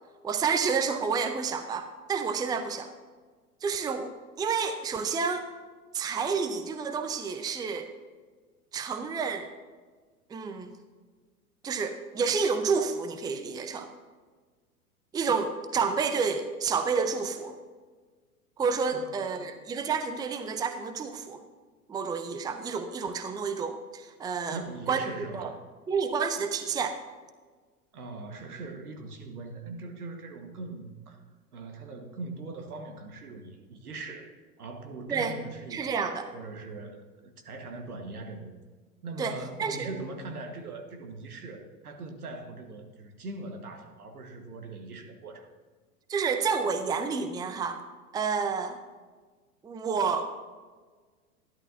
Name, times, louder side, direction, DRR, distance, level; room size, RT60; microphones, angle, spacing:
voice 1, 0.2-2.9 3.6-5.5 5.9-7.9 8.7-9.5 10.3-10.7 11.6-13.9 15.1-17.6 18.6-21.4 21.9-25.0 25.3-25.5 25.9-27.0 35.1-35.4 35.7-36.3 39.2-39.9 46.1-47.8 48.1-48.8 49.6-50.3, right 5 dB, 10° right, 8 dB, 0.6 m, -29 dB
voice 2, 18.9-19.6 24.5-25.6 27.9-31.2 31.5-36.0 36.3-38.6 39.0-45.5, right 3 dB, 80° right, 4 dB, 1.7 m, -41 dB
13.0 x 11.0 x 2.8 m, 1.5 s
figure-of-eight pair, 95°, 44 cm